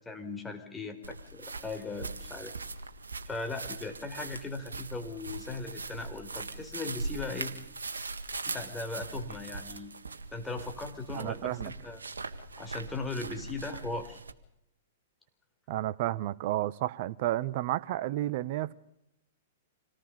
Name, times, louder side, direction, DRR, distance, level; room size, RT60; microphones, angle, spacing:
voice 1, 0.0-2.5 3.3-7.5 8.5-9.9 10.3-12.0 12.6-14.2, left 3 dB, 10° left, 4.2 m, -38 dB
sound 1, 1.0-14.3, right 3 dB, 80° right, 1.8 m, -41 dB
voice 2, 11.1-11.7 15.7-18.7, right 14 dB, 50° right, 1.2 m, -31 dB
27.0 x 18.5 x 6.8 m
figure-of-eight pair, 110°, 0 cm